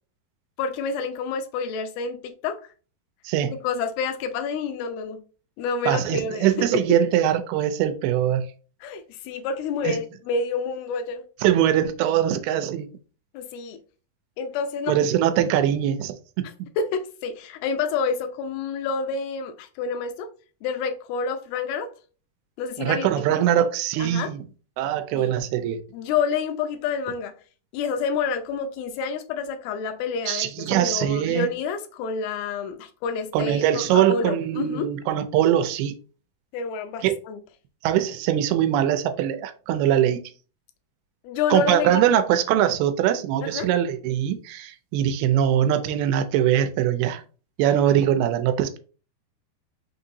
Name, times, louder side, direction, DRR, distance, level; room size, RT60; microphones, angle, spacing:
voice 1, 0.6-2.6 3.4-5.2 5.6-6.5 8.8-11.2 13.3-13.8 14.4-15.0 16.8-20.3 20.6-21.9 22.6-23.4 24.0-24.3 25.1-25.3 25.9-27.3 27.7-34.9 36.5-37.4 41.2-42.0 43.4-43.7, left 5 dB, 85° left, 2.5 m, -28 dB
voice 2, 3.2-3.5 5.9-8.5 9.8-10.0 11.4-12.9 14.9-16.2 22.8-24.4 24.8-25.8 30.3-31.5 33.3-36.0 37.0-37.2 37.8-40.2 41.5-47.2 47.6-48.8, right 10 dB, 90° right, 2.5 m, -22 dB
5.9 x 2.8 x 2.6 m
omnidirectional pair, 4.4 m